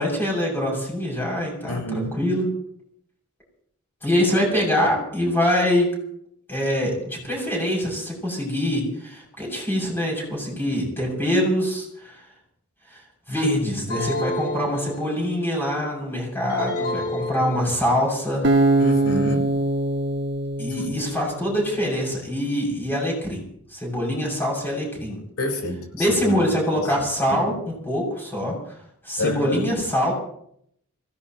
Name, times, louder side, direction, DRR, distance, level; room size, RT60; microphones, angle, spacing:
voice 1, 0.0-2.5 4.0-5.9 6.5-12.2 13.3-18.5 20.6-23.4 23.7-25.2 25.9-28.8 29.0-30.1, equal, 10° left, -2 dB, 7.0 m, -24 dB
voice 2, 1.7-2.1 18.8-19.5 25.4-26.5 27.3-27.6 29.2-29.7, left 1 dB, 80° left, 1 dB, 4.5 m, -28 dB
sound 1, 13.9-15.5 16.5-18.1, left 1 dB, 40° left, 5.9 m, -30 dB
Acoustic guitar, 18.4-21.7, right 2 dB, 55° right, 1.4 m, -22 dB
26.5 x 16.5 x 3.0 m, 0.69 s
head